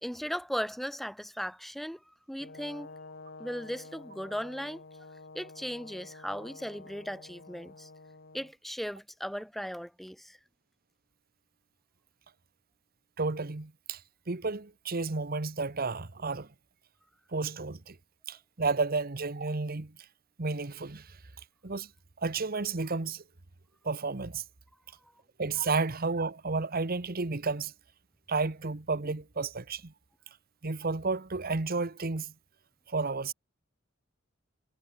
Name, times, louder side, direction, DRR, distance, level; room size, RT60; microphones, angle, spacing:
voice 1, 0.0-2.9 3.4-4.8 5.3-7.9 8.3-10.4 25.0-25.1, equal, ahead, 3.1 m, -37 dB
Brass instrument, 2.4-8.5, left 3 dB, 60° left, 2.6 m, -49 dB
voice 2, 13.2-14.0 14.3-16.5 17.3-18.0 18.3-19.9 20.4-21.2 21.6-21.9 22.2-23.2 23.8-24.4 25.4-27.7 28.3-29.9 30.6-32.3 32.9-33.3, right 4 dB, 50° right, 1.2 m, -32 dB
head